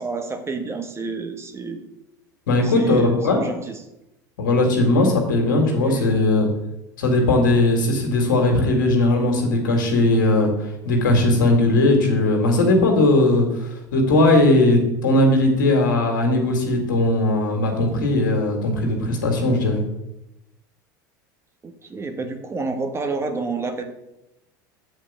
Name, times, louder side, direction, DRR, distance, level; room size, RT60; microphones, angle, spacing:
voice 1, 0.0-1.8 2.6-3.8 5.8-6.1 21.8-23.8, right 4 dB, 25° right, 6 dB, 1.4 m, -29 dB
voice 2, 2.5-3.4 4.4-6.5 7.0-10.5 10.8-19.8, left 2 dB, 80° left, 3 dB, 2.1 m, -18 dB
8.1 x 4.6 x 7.3 m, 0.89 s
hypercardioid pair, 80°, 10 cm